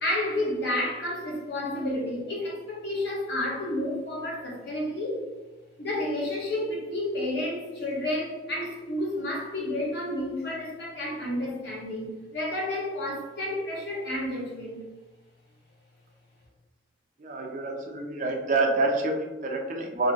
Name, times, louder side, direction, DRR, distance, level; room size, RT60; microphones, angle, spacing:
voice 1, 0.0-5.2 5.8-14.8, left 1 dB, 60° left, -3 dB, 0.9 m, -30 dB
voice 2, 17.2-20.1, right 2 dB, 40° right, 1 dB, 0.4 m, -27 dB
2.7 x 2.6 x 2.8 m, 1.2 s
head